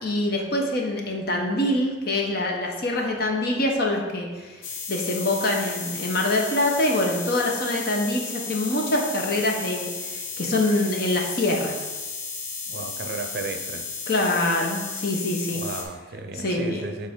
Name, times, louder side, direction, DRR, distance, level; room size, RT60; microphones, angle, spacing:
voice 1, 0.0-4.6 4.9-11.8 14.1-15.6 16.4-16.8, left 1 dB, 50° left, 0 dB, 0.9 m, -25 dB
sound 1, 4.6-15.8, left 4 dB, 75° left, 0.9 m, -34 dB
voice 2, 12.7-13.9 15.5-17.1, right 3 dB, 55° right, 6 dB, 0.5 m, -34 dB
7.4 x 4.0 x 3.7 m, 1.2 s
head